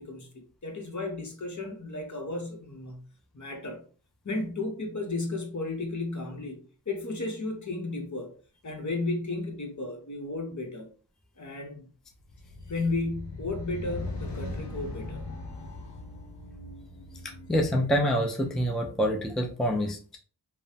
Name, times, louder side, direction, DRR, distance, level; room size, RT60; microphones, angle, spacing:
voice 1, 0.0-3.0 3.3-3.8 4.2-6.6 6.9-8.3 8.6-10.9 11.4-11.9 12.6-15.2, left 2 dB, 45° left, 0.9 m, -34 dB
sound 1, 12.3-18.8, left 2 dB, 90° left, 0.7 m, -40 dB
voice 2, 17.5-20.2, equal, ahead, 0.5 m, -26 dB
3.0 x 2.0 x 2.7 m
cardioid pair, 40°, 41 cm